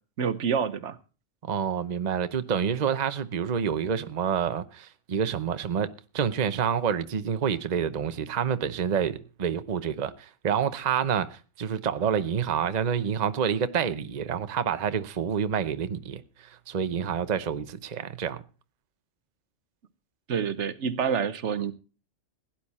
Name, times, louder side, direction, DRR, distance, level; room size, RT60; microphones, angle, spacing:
voice 1, 0.2-1.0 20.3-21.7, right 7 dB, 70° right, 1.2 m, -27 dB
voice 2, 1.4-18.4, right 7 dB, 40° right, 0.9 m, -28 dB
16.5 x 10.5 x 4.2 m
omnidirectional pair, 1.2 m